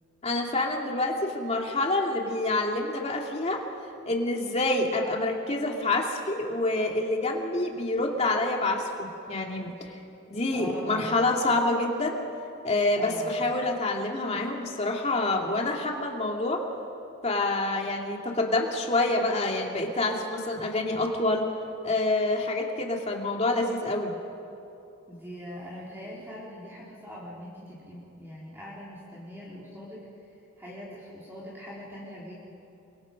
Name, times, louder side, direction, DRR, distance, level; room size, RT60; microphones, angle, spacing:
voice 1, 0.2-3.6 4.1-9.7 10.3-12.2 12.6-16.6 17.2-21.5 21.8-24.1, left 2 dB, 30° left, 1 dB, 2.6 m, -27 dB
voice 2, 10.5-11.3 12.9-13.5 25.1-30.1 30.6-32.3, left 1 dB, 10° right, -7 dB, 3.7 m, -42 dB
29.5 x 23.5 x 5.3 m, 2.9 s
head